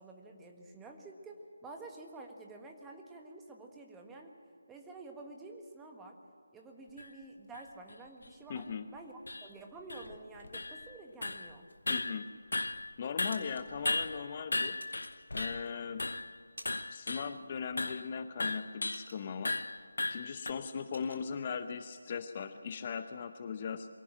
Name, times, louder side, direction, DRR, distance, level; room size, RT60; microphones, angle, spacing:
voice 1, 0.0-4.3 4.7-6.2 6.5-8.7 8.9-11.7, right 2 dB, 10° right, 2 dB, 1.7 m, -49 dB
sound 1, 7.0-7.1 7.5-7.7 8.2-8.3 8.6-8.7 9.3-9.5 9.9-11.0 11.2-11.5 11.9-12.9 13.2-15.7 16.0-16.4 16.7-17.4 17.8-18.1 18.4-19.1 19.5-20.5, left 2 dB, 70° left, 0.9 m, -36 dB
voice 2, 8.5-8.9 11.9-12.3 13.0-14.8 15.3-16.0 16.9-19.6 20.1-23.9, left 6 dB, 35° left, 10 dB, 0.8 m, -39 dB
sound 2, 12.4-12.7 13.0-13.7 14.8-15.6 16.1-17.1 17.3-17.6 18.0-19.7 20.0-20.2 20.5-21.3, right 1 dB, 85° right, 3.7 m, -52 dB
23.0 x 16.5 x 7.7 m, 2.4 s
figure-of-eight pair, 155°, 0 cm